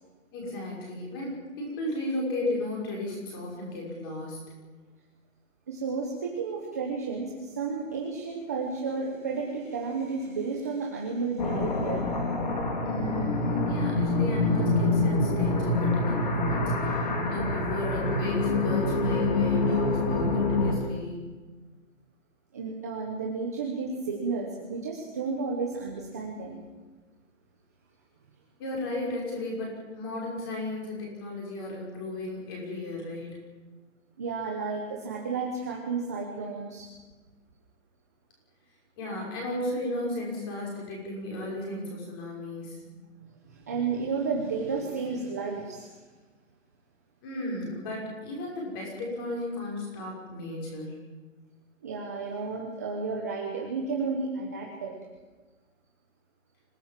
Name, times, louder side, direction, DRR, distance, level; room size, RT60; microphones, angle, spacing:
voice 1, 0.3-4.4 12.8-21.3 28.6-33.4 39.0-43.0 47.2-51.0, left 1 dB, 15° left, -2 dB, 5.8 m, -34 dB
voice 2, 5.7-12.1 22.5-26.6 34.2-36.9 43.5-45.9 51.8-54.9, right 4 dB, 10° right, -1 dB, 1.1 m, -32 dB
sound 1, 11.4-20.7, left 2 dB, 35° left, 3.4 m, -26 dB
26.0 x 18.0 x 7.5 m, 1.3 s
hypercardioid pair, 175°, 40 cm